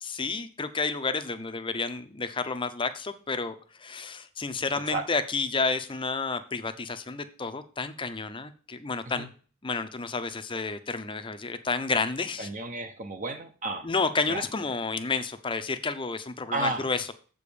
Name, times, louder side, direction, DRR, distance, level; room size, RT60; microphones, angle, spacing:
voice 1, 0.0-9.3 9.6-12.5 13.8-17.1, left 4 dB, 25° left, 8 dB, 0.7 m, -30 dB
voice 2, 12.4-13.9 14.3-14.5 16.5-16.9, right 2 dB, 35° right, 5 dB, 0.9 m, -32 dB
7.6 x 5.0 x 7.0 m, 0.41 s
head